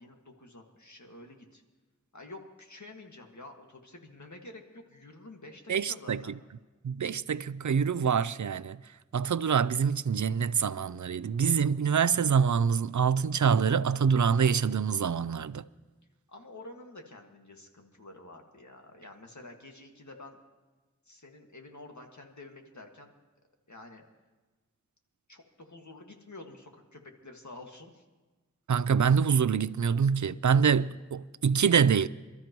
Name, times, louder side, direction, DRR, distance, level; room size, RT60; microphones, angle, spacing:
voice 1, 0.0-1.6 2.1-5.6 5.9-6.3 16.3-20.4 21.1-23.1 23.7-24.0 25.3-28.0, left 2 dB, 75° left, 1.9 m, -49 dB
voice 2, 5.7-6.2 6.8-8.8 9.1-15.6 28.7-32.1, right 6 dB, 80° right, 0.5 m, -25 dB
27.5 x 13.0 x 3.1 m
wide cardioid pair, 40°, 29 cm